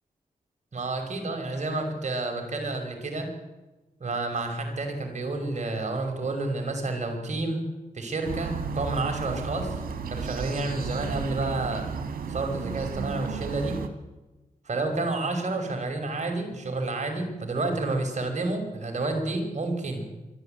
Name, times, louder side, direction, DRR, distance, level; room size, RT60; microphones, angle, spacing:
voice 1, 0.7-3.3 4.0-7.6 7.9-9.7 10.1-11.9 12.3-13.8 14.7-20.1, right 2 dB, 55° right, 4 dB, 5.8 m, -30 dB
sound 1, 8.2-13.9, right 5 dB, 85° right, 2.1 m, -33 dB
25.0 x 12.0 x 9.3 m, 1.1 s
cardioid pair, 60°, 15 cm